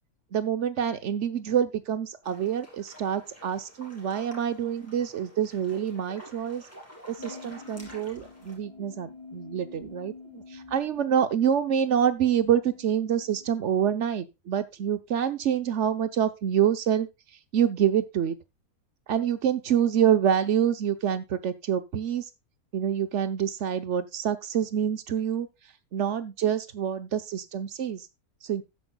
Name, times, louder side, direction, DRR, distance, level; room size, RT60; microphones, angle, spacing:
voice 1, 0.3-6.6 7.1-17.1 17.5-18.4 19.1-22.3 22.7-25.5 25.9-28.1 28.4-28.6, right 9 dB, 55° right, 1.1 m, -26 dB
sound 1, 2.2-8.6, equal, 10° left, 3.6 m, -49 dB
sound 2, 7.2-14.1, left 4 dB, 25° left, 0.8 m, -48 dB
13.0 x 9.5 x 2.3 m
omnidirectional pair, 1.6 m